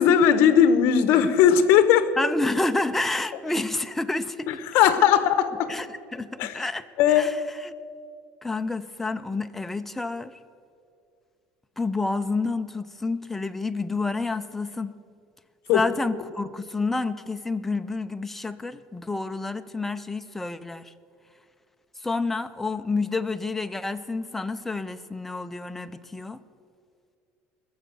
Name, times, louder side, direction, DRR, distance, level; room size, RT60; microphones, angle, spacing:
voice 1, 0.0-2.1 4.5-5.7 6.4-6.6 7.0-7.3 15.7-15.8, left 9 dB, 55° left, 11 dB, 1.0 m, -18 dB
voice 2, 2.2-4.6 5.7-5.9 6.1-7.4 7.6-7.7 8.4-10.4 11.8-15.0 15.7-20.9 22.0-26.4, left 3 dB, 5° left, 9 dB, 0.4 m, -29 dB
20.5 x 7.1 x 6.8 m, 2.3 s
cardioid pair, 160°, 5 cm